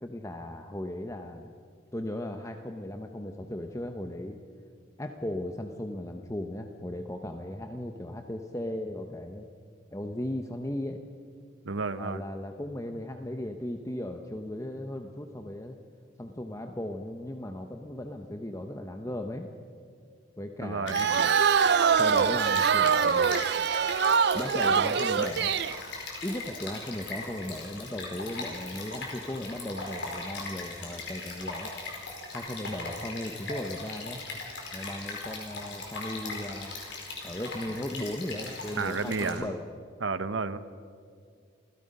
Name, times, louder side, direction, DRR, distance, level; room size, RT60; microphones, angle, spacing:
voice 1, 0.0-1.5 1.9-4.4 5.0-9.5 9.9-11.0 12.0-15.8 16.2-19.5 20.4-21.3 21.9-23.3 24.3-25.6 26.2-31.7 32.3-34.2 34.7-36.7 37.2-39.7, left 1 dB, 15° left, 5 dB, 0.8 m, -37 dB
voice 2, 11.6-12.2 20.6-21.1 38.8-39.5 40.0-40.6, right 4 dB, 75° right, 12 dB, 0.9 m, -31 dB
Stream, 20.9-39.3, left 3 dB, 60° left, 4.7 m, -39 dB
sound 1, 20.9-25.8, right 6 dB, 55° right, 0.4 m, -24 dB
28.5 x 16.5 x 5.5 m, 2.2 s
head